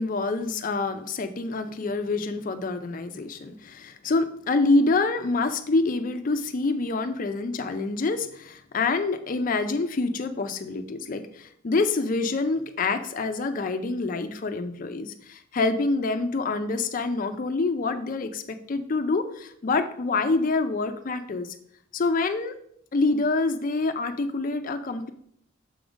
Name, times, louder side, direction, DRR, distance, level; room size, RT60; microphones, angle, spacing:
voice 1, 0.0-21.6 21.9-22.5 22.9-25.1, left 3 dB, 40° left, 9 dB, 0.4 m, -26 dB
6.9 x 3.6 x 5.0 m, 0.68 s
head